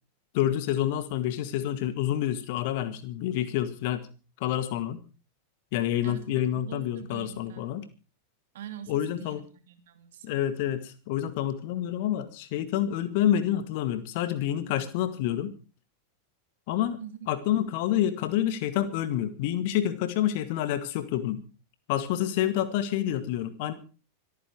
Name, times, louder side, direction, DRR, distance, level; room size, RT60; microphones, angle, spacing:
voice 1, 0.3-4.0 4.4-5.0 5.7-7.9 8.9-9.4 10.2-15.6 16.7-17.0 17.3-21.4 21.9-23.7, left 11 dB, 50° left, 12 dB, 1.9 m, -28 dB
voice 2, 6.0-7.7 8.5-10.4 17.0-17.2, right 10 dB, 55° right, 9 dB, 2.6 m, -44 dB
25.5 x 9.4 x 4.8 m, 0.34 s
figure-of-eight pair, 90°, 0 cm